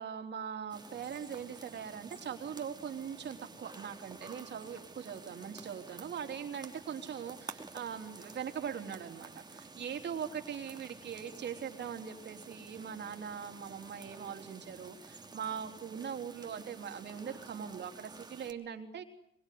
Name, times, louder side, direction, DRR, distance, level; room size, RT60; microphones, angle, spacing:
voice 1, 0.0-19.0, right 7 dB, 60° right, 6 dB, 3.6 m, -41 dB
sound 1, 0.7-18.5, right 3 dB, 20° right, 2.8 m, -51 dB
23.5 x 23.0 x 9.4 m, 0.71 s
cardioid pair, 90°, 20 cm